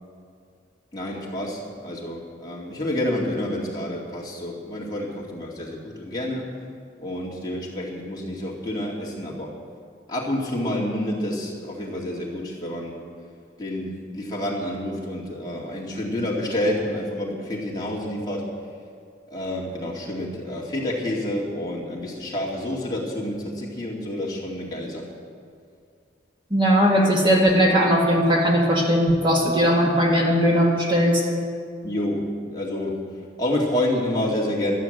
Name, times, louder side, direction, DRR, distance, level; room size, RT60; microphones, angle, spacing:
voice 1, 0.9-6.5 7.0-9.5 10.1-12.9 13.6-18.5 19.3-25.0 31.8-33.0 33.4-34.8, left 1 dB, 20° left, -4 dB, 2.2 m, -28 dB
voice 2, 26.5-31.2, equal, 25° right, -2 dB, 1.8 m, -19 dB
12.0 x 12.0 x 7.8 m, 2.3 s
head